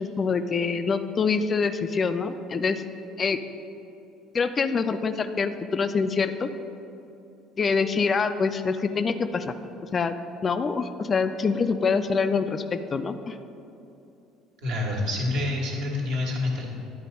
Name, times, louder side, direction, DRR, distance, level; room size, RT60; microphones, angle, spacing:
voice 1, 0.0-2.8 3.2-3.4 4.3-6.5 7.6-9.5 9.9-10.2 10.4-13.4, left 5 dB, 35° left, 9 dB, 0.4 m, -25 dB
voice 2, 14.6-16.7, left 2 dB, 65° right, -3 dB, 1.5 m, -27 dB
10.0 x 4.1 x 5.2 m, 2.8 s
figure-of-eight pair, 55°, 0 cm